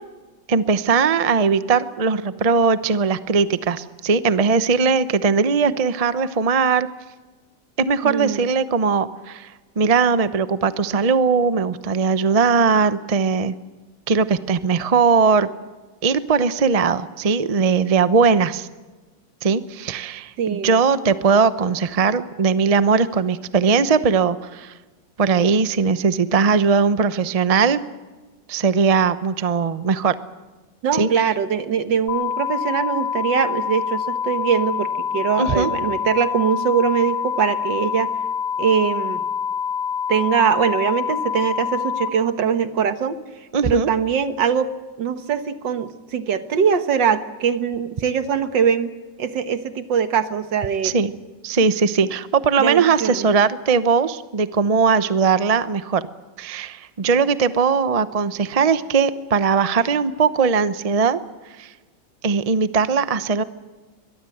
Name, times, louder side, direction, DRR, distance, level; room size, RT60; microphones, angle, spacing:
voice 1, 0.5-6.9 7.8-9.5 9.8-13.5 14.1-15.5 16.0-18.7 19.4-24.7 25.2-27.8 28.5-30.1 30.9-31.3 35.4-35.7 43.5-43.9 50.8-51.1 51.4-56.0 56.4-61.2 61.6-61.7 62.2-63.4, right 5 dB, 35° right, 13 dB, 0.5 m, -19 dB
voice 2, 8.0-8.5 20.4-20.8 30.8-38.1 38.6-39.2 40.1-43.2 43.6-44.7 45.0-48.9 49.2-51.0 52.6-53.3, right 7 dB, 75° right, 10 dB, 2.0 m, -22 dB
sound 1, 32.1-42.1, left 7 dB, 90° left, 2.4 m, -26 dB
23.0 x 21.5 x 8.0 m, 1.3 s
omnidirectional pair, 2.0 m